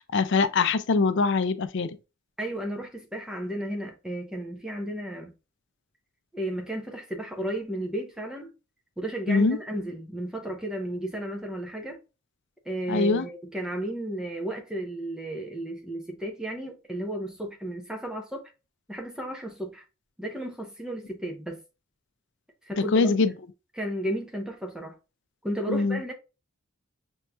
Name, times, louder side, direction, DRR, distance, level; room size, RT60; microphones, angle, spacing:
voice 1, 0.0-2.0 9.3-9.6 12.9-13.2 22.8-23.3 25.7-26.0, left 4 dB, 60° left, 0.5 m, -23 dB
voice 2, 2.4-5.3 6.3-8.5 9.0-12.0 12.7-18.5 18.9-19.8 20.2-21.6 22.6-23.1 23.7-25.0 25.4-26.1, right 1 dB, 5° right, 0.8 m, -33 dB
6.2 x 2.8 x 2.3 m
head